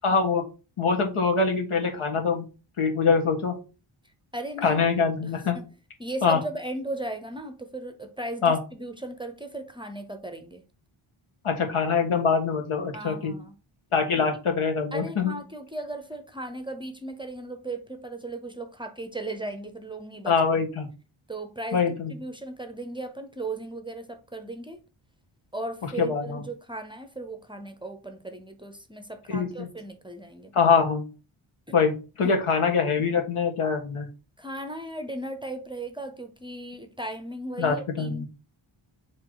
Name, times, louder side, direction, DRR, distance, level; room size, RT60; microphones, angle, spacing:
voice 1, 0.0-0.4 0.8-2.4 2.8-3.5 4.6-5.6 6.2-6.4 8.4-8.6 11.4-13.3 13.9-15.4 20.2-20.9 21.7-22.1 26.0-26.4 29.3-29.7 30.5-31.0 31.7-31.9 32.2-34.1 37.6-38.3, left 5 dB, 90° left, 1.6 m, -24 dB
voice 2, 4.3-4.8 5.2-5.7 6.0-10.6 12.9-13.5 14.9-20.3 21.3-24.8 25.5-30.7 32.2-32.4 34.4-38.3, right 2 dB, 10° right, 0.6 m, -36 dB
7.8 x 3.1 x 3.9 m
wide cardioid pair, 150°, 49 cm